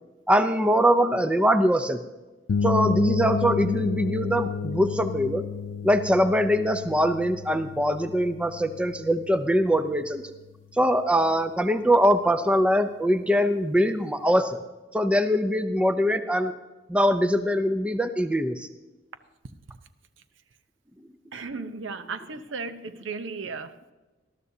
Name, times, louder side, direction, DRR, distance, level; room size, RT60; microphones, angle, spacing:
voice 1, 0.3-2.0 2.6-5.4 5.8-10.2 10.7-14.6 14.9-16.5 16.9-18.7, equal, 5° right, 9 dB, 0.5 m, -22 dB
sound 1, 2.5-10.2, left 6 dB, 75° left, 0.4 m, -31 dB
voice 2, 21.3-23.9, right 4 dB, 80° right, 10 dB, 0.8 m, -35 dB
19.5 x 12.5 x 2.7 m, 1.2 s
head